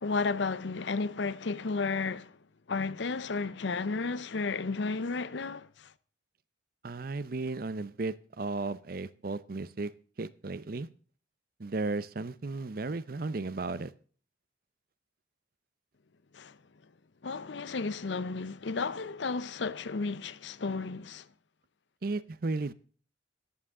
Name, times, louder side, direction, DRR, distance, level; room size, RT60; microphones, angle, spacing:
voice 1, 0.0-2.3 2.7-5.9 16.3-16.6 17.2-21.3, left 4 dB, 70° left, 0.7 m, -33 dB
voice 2, 6.8-9.9 10.2-10.9 11.6-13.9 22.0-22.7, right 3 dB, 50° right, 0.6 m, -34 dB
14.0 x 11.0 x 3.7 m
head